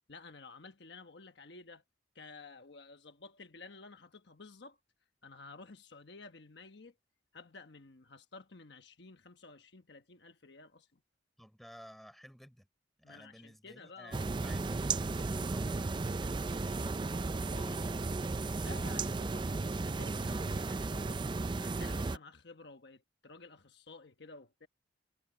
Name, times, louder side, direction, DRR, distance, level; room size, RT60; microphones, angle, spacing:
voice 1, 0.1-1.8 2.1-4.8 5.2-6.9 7.3-11.0 13.0-14.4 17.5-17.9 18.6-24.7, left 3 dB, 60° left, 1.2 m, -53 dB
voice 2, 11.4-12.7 13.0-17.6, equal, ahead, 4.7 m, -55 dB
sound 1, 14.1-22.2, right 3 dB, 25° right, 0.4 m, -34 dB
head